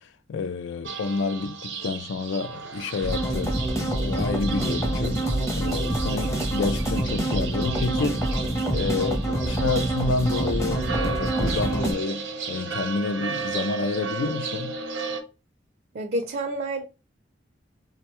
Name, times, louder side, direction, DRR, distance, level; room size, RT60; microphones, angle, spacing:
voice 1, 0.0-3.6 3.9-5.2 5.6-8.2 8.7-14.8, left 4 dB, 85° left, 0.4 m, -29 dB
sound 1, 0.8-15.2, right 5 dB, 80° right, 0.7 m, -35 dB
sound 2, 3.0-11.9, right 1 dB, 15° left, 0.6 m, -26 dB
voice 2, 15.9-16.9, right 1 dB, 50° right, 0.4 m, -29 dB
4.5 x 2.2 x 2.9 m
head